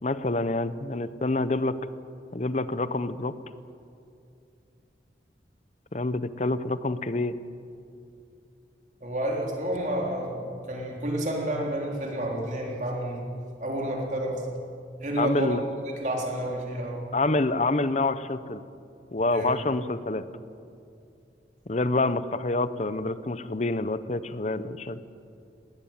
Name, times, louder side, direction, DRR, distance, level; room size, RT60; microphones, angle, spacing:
voice 1, 0.0-1.8 2.3-3.3 5.9-7.4 15.2-15.6 17.1-18.6 19.1-20.2 21.7-25.0, left 2 dB, 40° left, 14 dB, 0.8 m, -27 dB
voice 2, 9.0-13.3 13.6-14.5 15.0-15.6 15.9-17.0 19.3-19.5, right 1 dB, 45° right, 0 dB, 3.7 m, -30 dB
20.0 x 18.0 x 8.9 m, 2.5 s
head